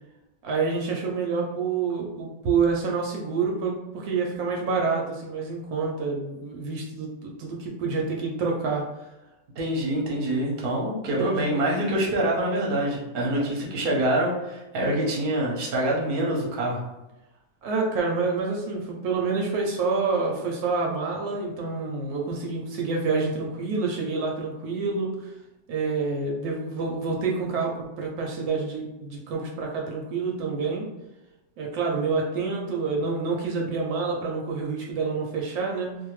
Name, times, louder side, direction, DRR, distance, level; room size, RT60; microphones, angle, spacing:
voice 1, 0.4-8.9 11.1-11.4 17.6-25.3 25.7-30.9 31.6-36.0, right 4 dB, 75° right, -1 dB, 1.0 m, -27 dB
voice 2, 9.6-16.8, right 1 dB, 50° right, -3 dB, 0.7 m, -25 dB
2.7 x 2.1 x 3.0 m, 0.99 s
omnidirectional pair, 1.7 m